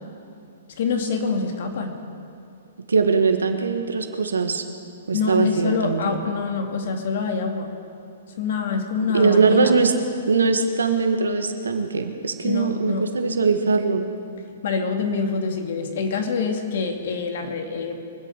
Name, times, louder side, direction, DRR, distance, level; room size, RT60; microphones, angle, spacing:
voice 1, 0.8-1.9 5.1-7.7 8.4-9.7 12.4-13.0 14.6-18.0, left 5 dB, 60° left, 3 dB, 2.4 m, -25 dB
voice 2, 2.9-4.6 5.1-6.2 9.1-9.9 10.3-14.0, right 4 dB, 90° right, 6 dB, 1.5 m, -21 dB
24.0 x 8.2 x 6.6 m, 2.6 s
hypercardioid pair, 130°, 0 cm